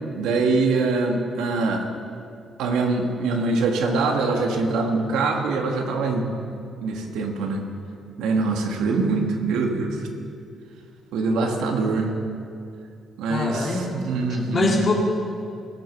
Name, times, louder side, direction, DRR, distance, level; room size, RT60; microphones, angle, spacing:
voice 1, 0.2-1.9 2.6-6.3 6.8-7.6 8.2-10.1 11.1-12.1 13.2-14.8, right 3 dB, 90° right, 3 dB, 1.5 m, -23 dB
voice 2, 13.3-13.9 14.3-14.9, left 3 dB, 40° left, -1 dB, 2.7 m, -24 dB
16.5 x 7.7 x 6.8 m, 2.5 s
cardioid pair, 90°, 0 cm